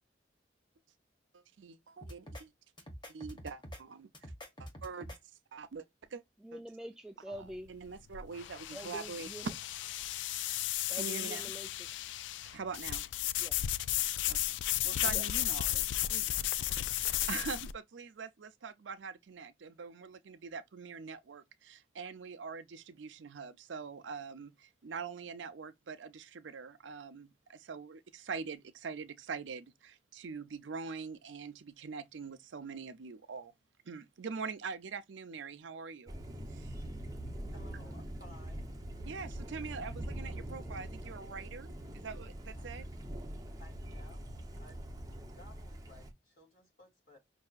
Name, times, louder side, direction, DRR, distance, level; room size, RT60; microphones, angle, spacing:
voice 1, 1.3-2.5 3.1-4.1 4.6-5.1 5.5-5.8 6.1-6.2 7.7-9.3 10.9-11.5 12.5-13.1 14.2-16.4 17.3-33.5 33.9-36.1 36.5-36.7 39.0-42.9, right 5 dB, 85° right, 0.5 m, -44 dB
sound 1, 2.0-2.4 2.8-3.8 4.1-5.2, equal, 25° left, 1.3 m, -46 dB
voice 2, 6.4-7.7 8.7-9.5 10.9-12.1 13.4-13.8 14.9-15.4, right 1 dB, 5° right, 0.3 m, -46 dB
sound 2, 7.3-17.7, left 13 dB, 75° left, 0.3 m, -34 dB
Thunder, 36.1-46.1, right 1 dB, 20° right, 0.7 m, -43 dB
voice 3, 37.5-38.7 42.6-42.7 43.6-44.3 44.6-47.2, left 2 dB, 45° left, 3.0 m, -58 dB
5.5 x 2.7 x 2.4 m
head